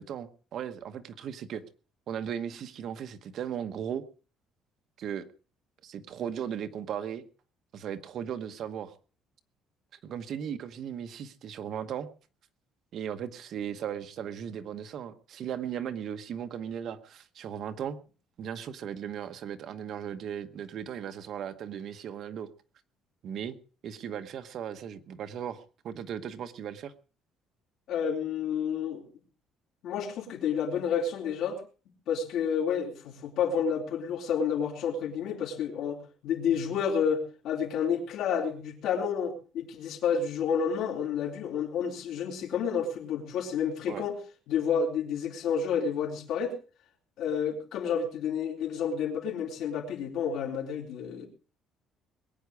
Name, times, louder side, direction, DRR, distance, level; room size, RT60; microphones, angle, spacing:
voice 1, 0.0-1.6 2.1-4.0 5.0-5.3 5.8-7.2 7.7-8.9 10.0-12.1 12.9-18.0 18.4-22.5 23.2-23.5 23.8-26.9 43.9-44.1, right 8 dB, 50° right, 1.1 m, -37 dB
voice 2, 27.9-29.1 29.8-31.6 32.1-44.2 44.5-46.5 47.2-51.3, left 7 dB, 65° left, 3.8 m, -30 dB
21.5 x 9.5 x 4.8 m
cardioid pair, 150°, 0 cm